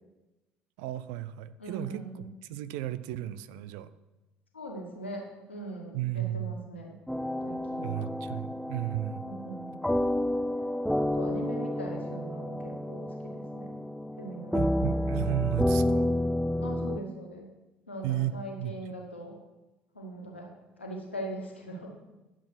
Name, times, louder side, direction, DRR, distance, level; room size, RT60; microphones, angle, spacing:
voice 1, 0.8-3.9 5.9-6.6 7.8-9.2 14.5-16.1 18.0-18.7, right 13 dB, 65° right, 14 dB, 0.6 m, -34 dB
voice 2, 1.6-2.3 4.5-7.0 7.4-8.1 9.2-9.8 11.0-13.8 14.2-14.6 16.6-17.5 17.9-19.4 19.9-20.5 20.8-22.0, right 1 dB, 90° left, 0 dB, 2.0 m, -41 dB
sound 1, 7.1-17.0, left 1 dB, 5° left, 0.5 m, -30 dB
11.5 x 7.6 x 6.1 m, 1.0 s
figure-of-eight pair, 60°, 6 cm